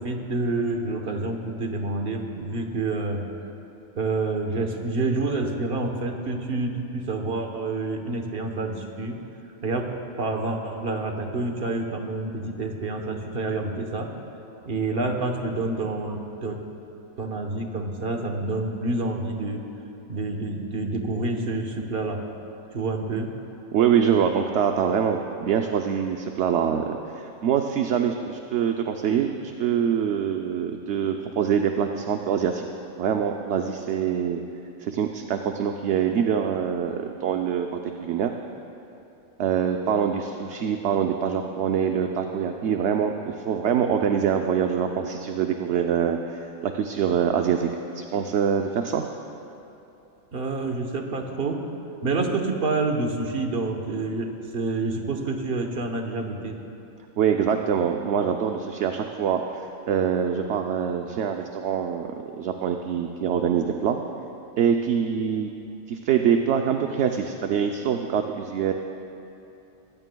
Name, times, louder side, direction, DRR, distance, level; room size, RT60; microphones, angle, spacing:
voice 1, 0.0-3.3 3.9-9.2 9.6-9.9 10.1-14.1 14.6-16.6 17.2-19.6 20.1-22.2 22.7-23.3 50.3-51.6 52.0-56.6, right 3 dB, 50° right, 3 dB, 1.2 m, -28 dB
voice 2, 23.7-32.6 33.0-34.4 34.8-38.3 39.4-47.7 47.9-49.0 57.2-62.1 62.4-64.0 64.6-65.5 65.9-68.7, right 8 dB, 65° right, 4 dB, 0.9 m, -24 dB
22.5 x 15.5 x 2.3 m, 2.8 s
omnidirectional pair, 1.3 m